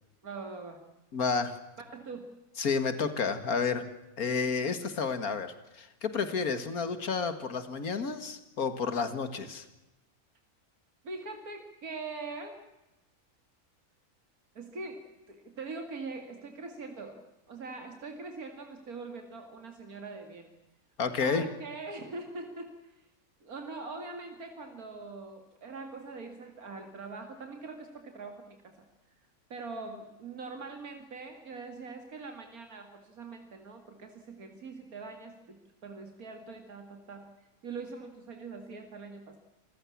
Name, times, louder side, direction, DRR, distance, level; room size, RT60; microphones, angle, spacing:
voice 1, 0.2-0.8 1.8-2.3 11.0-12.6 14.5-20.5 21.2-23.0 23.4-28.8 29.5-39.4, right 3 dB, 85° right, 5 dB, 2.7 m, -43 dB
voice 2, 1.1-1.6 2.6-3.8 4.2-9.6 21.0-21.5, left 5 dB, 85° left, 10 dB, 2.2 m, -31 dB
27.0 x 15.5 x 8.5 m, 0.99 s
omnidirectional pair, 1.5 m